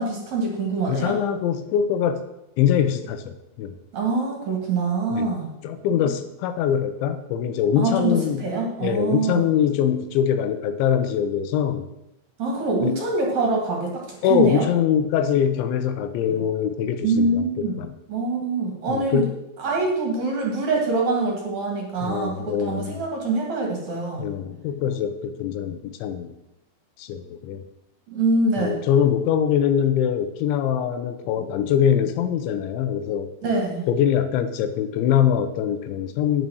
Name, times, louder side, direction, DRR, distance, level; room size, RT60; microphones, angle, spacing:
voice 1, 0.0-1.2 3.9-5.5 7.8-9.4 12.4-14.7 17.0-17.8 18.1-19.3 19.6-24.3 28.1-28.8 33.4-33.8, right 3 dB, 50° right, 0 dB, 2.8 m, -24 dB
voice 2, 0.9-2.2 2.6-3.7 5.1-5.3 5.6-8.5 8.8-11.9 12.8-13.0 14.2-17.9 18.9-19.3 22.0-23.0 24.2-26.3 27.0-27.6 28.6-33.3 33.9-36.5, left 9 dB, 85° left, 10 dB, 3.3 m, -23 dB
10.0 x 9.2 x 6.4 m, 0.88 s
omnidirectional pair, 5.2 m